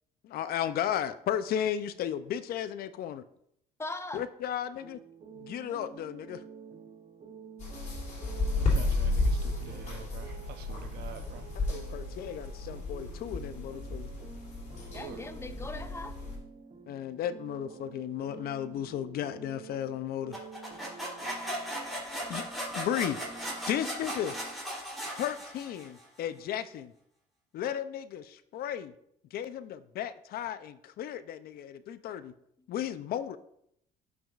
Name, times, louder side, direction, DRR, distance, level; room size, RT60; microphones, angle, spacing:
voice 1, 0.3-3.2 4.1-5.0 5.4-6.4 11.7-14.1 16.9-20.4 22.3-22.4 22.7-23.2 23.7-24.3 25.2-26.9 27.5-28.9 29.3-32.3 32.7-33.4, left 10 dB, 65° left, 13 dB, 0.5 m, -34 dB
voice 2, 3.8-4.2 13.0-13.1 14.9-16.1 23.7-23.9, left 2 dB, 15° left, 9 dB, 0.7 m, -40 dB
sound 1, 4.8-24.6, right 6 dB, 35° right, 0.8 m, -49 dB
sound 2, 7.6-16.4, left 2 dB, 45° left, 2.9 m, -33 dB
voice 3, 8.6-11.4 14.9-15.2, right 8 dB, 70° right, 8 dB, 0.8 m, -46 dB
sound 3, 20.3-26.0, equal, ahead, 3.1 m, -37 dB
12.0 x 6.0 x 2.4 m, 0.74 s
cardioid pair, 110°, 17 cm